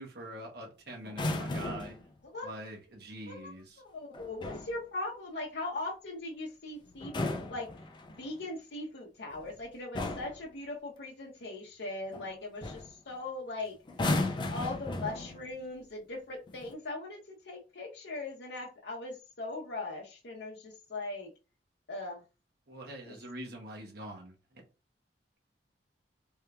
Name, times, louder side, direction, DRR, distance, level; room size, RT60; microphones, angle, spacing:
voice 1, 0.0-2.0 2.4-3.8 22.7-24.6, right 1 dB, 60° right, 1.0 m, -44 dB
sound 1, 1.1-2.0 4.1-4.8 6.9-8.3 9.3-9.6 9.9-10.4 12.1-12.3 12.6-12.9 13.9-15.5 16.5-16.7, left 2 dB, 25° left, 0.4 m, -35 dB
voice 2, 3.8-7.7 8.2-13.8 14.5-21.3 21.9-22.2 23.1-23.2, left 2 dB, 70° left, 0.7 m, -40 dB
3.3 x 2.8 x 2.3 m
head